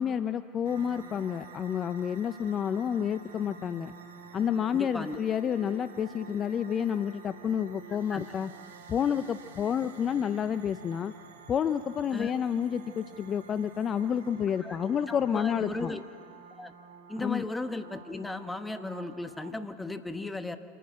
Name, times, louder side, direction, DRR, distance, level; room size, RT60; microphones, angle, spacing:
voice 1, 0.0-3.9 4.3-8.5 8.9-11.1 11.5-15.9 17.2-17.4, left 8 dB, 35° left, 13 dB, 0.5 m, -29 dB
sound 1, 0.6-19.5, right 5 dB, 80° right, 1.6 m, -50 dB
voice 2, 4.7-5.2 8.1-8.3 12.1-12.3 14.6-16.0 16.6-16.7 17.1-20.6, left 2 dB, 10° left, 9 dB, 1.2 m, -36 dB
26.5 x 10.0 x 9.6 m, 2.2 s
hypercardioid pair, 90°, 0 cm